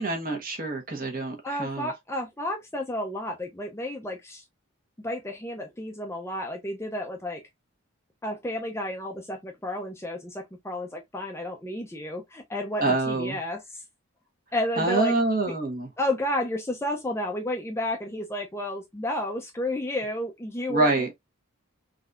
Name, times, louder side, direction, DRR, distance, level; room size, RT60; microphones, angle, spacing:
voice 1, 0.0-1.9 12.8-13.4 14.8-15.9 20.7-21.1, right 2 dB, 40° right, 1.2 m, -26 dB
voice 2, 1.4-4.4 5.0-7.4 8.2-13.8 14.5-15.1 15.5-15.6 16.0-20.9, left 1 dB, 10° left, 0.5 m, -31 dB
3.9 x 2.7 x 2.5 m
head